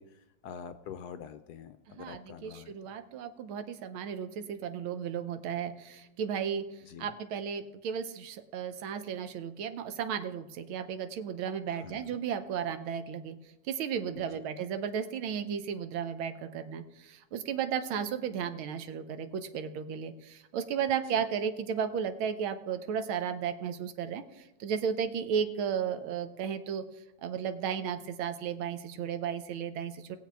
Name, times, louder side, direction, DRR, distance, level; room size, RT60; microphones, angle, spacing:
voice 1, 0.0-2.7 6.9-7.1 11.7-12.2 14.1-14.4, left 7 dB, 80° left, 10 dB, 0.9 m, -46 dB
voice 2, 1.9-6.7 7.0-13.4 13.7-26.8 27.2-30.2, right 7 dB, 80° right, 9 dB, 1.6 m, -34 dB
19.5 x 7.4 x 3.4 m, 0.96 s
omnidirectional pair, 2.2 m